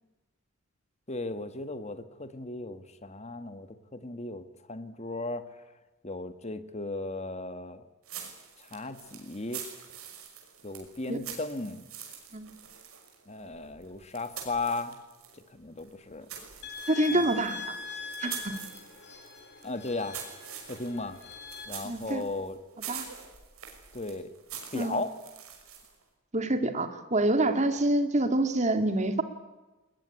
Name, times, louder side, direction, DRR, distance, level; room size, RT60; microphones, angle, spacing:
voice 1, 1.1-5.4 6.0-7.8 8.6-9.6 10.6-11.8 13.3-15.0 15.5-16.3 17.1-17.3 19.6-20.2 20.7-21.2 21.7-22.6 23.9-24.3 24.7-25.1, left 2 dB, 30° left, 10 dB, 1.6 m, -36 dB
sound 1, 8.0-15.4 15.8-26.0, right 8 dB, 80° right, 6.0 m, -45 dB
sound 2, 16.6-21.7, left 4 dB, 50° left, 4.4 m, -41 dB
voice 2, 16.9-17.8 18.2-18.6 21.8-22.2 22.9-23.1 24.7-25.0 26.3-29.2, right 1 dB, 30° right, 8 dB, 2.1 m, -27 dB
21.5 x 20.5 x 10.0 m, 1.1 s
head